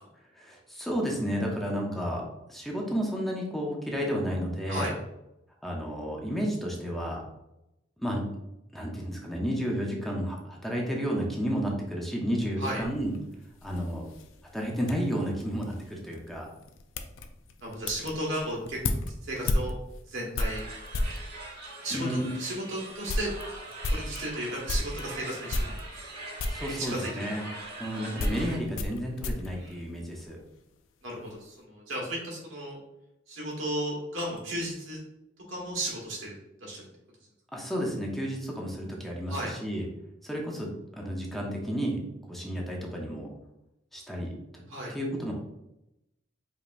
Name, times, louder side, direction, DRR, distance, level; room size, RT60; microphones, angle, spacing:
voice 1, 0.4-2.2 2.5-4.9 5.6-7.2 8.0-8.2 8.7-13.1 13.6-14.0 14.5-16.5 21.9-22.3 26.5-27.4 27.8-30.4 37.5-39.9 40.2-42.0 42.3-43.3 43.9-44.4 44.9-45.3, equal, ahead, -2 dB, 0.7 m, -32 dB
sound 1, 12.6-21.3 22.0-22.1 22.5-22.6 22.9-25.1 25.5-26.1 26.4-26.7 27.6-30.5 30.8-31.3, left 2 dB, 85° left, 0.4 m, -33 dB
voice 2, 17.6-18.9 19.2-19.7 20.1-20.6 21.8-23.3 23.9-25.8 26.6-27.4 29.5-29.8 31.0-32.8 33.3-35.0 35.5-36.3 36.6-36.9 39.3-39.5 44.7-44.9, right 1 dB, 80° right, -3 dB, 1.4 m, -34 dB
sound 2, 20.5-28.6, right 2 dB, 55° right, 1.0 m, -42 dB
5.1 x 2.8 x 2.5 m, 0.89 s
head